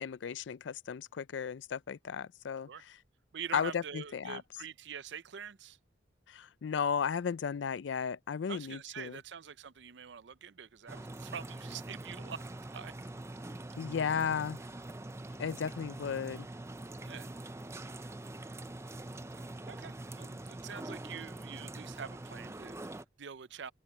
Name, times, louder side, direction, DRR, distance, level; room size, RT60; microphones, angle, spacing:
voice 1, 0.0-2.7 3.5-4.4 6.3-9.2 13.8-14.6 15.4-16.5, left 6 dB, 80° left, 0.4 m, -34 dB
voice 2, 3.3-5.8 8.5-12.9 17.0-17.3 19.3-23.7, right 7 dB, 70° right, 0.5 m, -45 dB
sound 1, 10.9-23.0, right 2 dB, 15° right, 0.5 m, -44 dB
open air
head